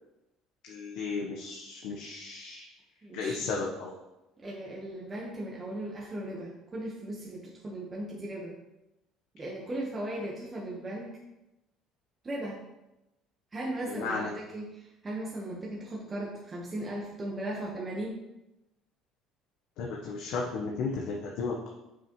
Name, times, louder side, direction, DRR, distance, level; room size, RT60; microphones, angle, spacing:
voice 1, 0.6-2.7 3.1-3.9 13.9-14.3 19.8-21.7, left 4 dB, 75° left, -2 dB, 1.0 m, -34 dB
voice 2, 3.0-3.5 4.4-8.5 9.3-11.1 12.2-12.6 13.5-18.2, right 1 dB, 25° right, -3 dB, 1.2 m, -37 dB
7.2 x 6.1 x 3.1 m, 0.96 s
cardioid pair, 120°, 0 cm